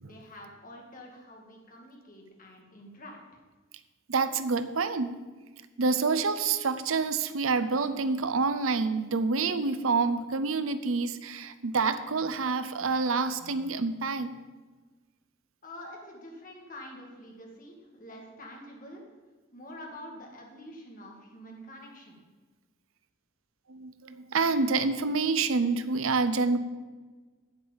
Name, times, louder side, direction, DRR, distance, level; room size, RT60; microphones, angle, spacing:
voice 1, 0.0-3.4 15.6-19.0 19.5-22.2, left 1 dB, 40° left, 0 dB, 2.2 m, -47 dB
voice 2, 4.1-5.2 5.8-14.3 23.7-26.6, right 4 dB, 85° right, 12 dB, 0.7 m, -27 dB
8.2 x 7.9 x 7.2 m, 1.4 s
head